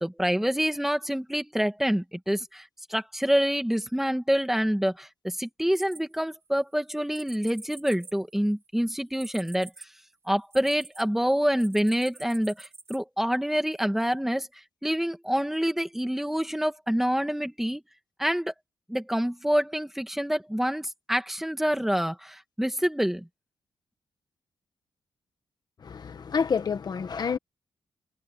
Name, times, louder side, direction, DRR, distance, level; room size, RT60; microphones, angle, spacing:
voice 1, 0.0-2.6 2.9-9.7 10.3-14.5 14.8-17.8 18.2-18.5 18.9-23.3, equal, 5° right, 2.3 m, -27 dB
sound 1, 5.7-6.6 7.1-11.0 11.6-13.0, right 3 dB, 30° right, 3.9 m, -46 dB
voice 2, 25.8-27.4, left 6 dB, 50° left, 1.4 m, -28 dB
cardioid pair, 100°, 9 cm